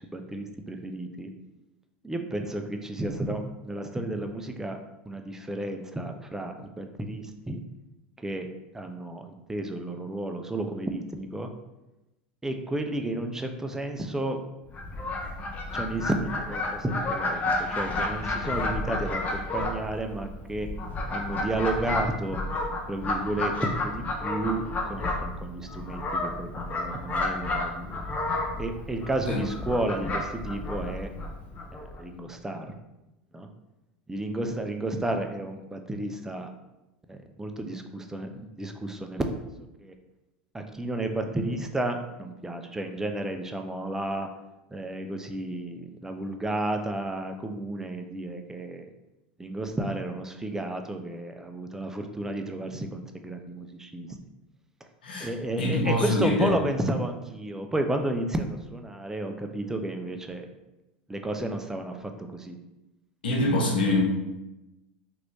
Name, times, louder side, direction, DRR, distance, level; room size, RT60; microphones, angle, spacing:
voice 1, 0.1-1.3 2.0-4.8 5.1-7.6 8.2-8.5 8.7-11.5 12.4-14.4 15.7-20.7 21.1-22.4 22.9-28.0 28.6-31.1 31.7-32.7 33.3-33.5 34.1-36.5 37.1-39.5 39.8-39.9 40.5-44.3 44.7-48.9 49.4-54.1 55.2-60.5 61.1-62.6, right 1 dB, 10° right, 5 dB, 0.4 m, -32 dB
Fowl, 14.7-32.0, left 2 dB, 30° left, 0.6 m, -31 dB
voice 2, 55.6-56.5 63.2-64.0, left 2 dB, 85° left, -2 dB, 0.9 m, -24 dB
3.0 x 2.5 x 3.2 m, 0.98 s
hypercardioid pair, 85°, 5 cm